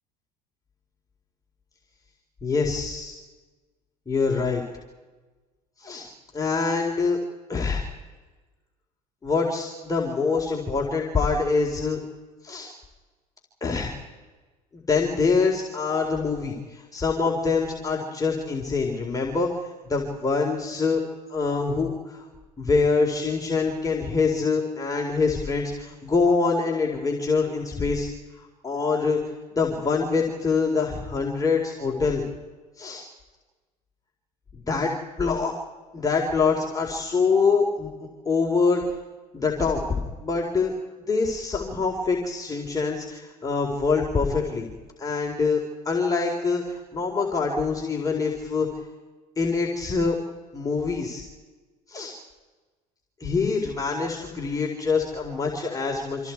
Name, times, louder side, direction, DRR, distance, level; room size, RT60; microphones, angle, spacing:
voice 1, 2.4-3.2 4.1-4.6 5.8-6.1 6.3-7.2 7.5-7.8 9.2-12.0 12.4-12.7 13.6-14.0 14.9-19.5 19.9-21.0 21.3-22.3 22.6-28.1 28.6-29.2 29.5-32.2 32.8-33.0 34.7-34.9 35.2-35.5 35.9-37.9 38.2-38.8 39.3-40.7 41.1-44.7 45.0-48.7 49.4-50.2 50.5-51.2 51.9-52.1 53.2-56.3, left 4 dB, 15° left, -1 dB, 4.4 m, -25 dB
29.0 x 26.5 x 4.8 m, 1.3 s
figure-of-eight pair, 65°, 20 cm